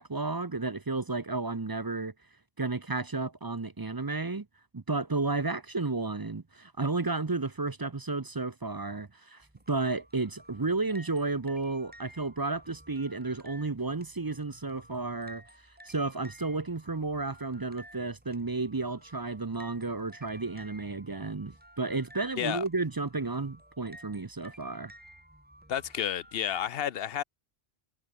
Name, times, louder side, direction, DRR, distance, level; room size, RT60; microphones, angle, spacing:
voice 1, 0.0-2.1 2.6-4.5 4.7-15.4 15.9-24.9, right 3 dB, 25° right, 0.6 m, -32 dB
sound 1, 9.4-26.7, right 1 dB, 10° right, 2.3 m, -54 dB
voice 2, 25.7-27.2, left 9 dB, 70° left, 0.9 m, -31 dB
omnidirectional pair, 1.0 m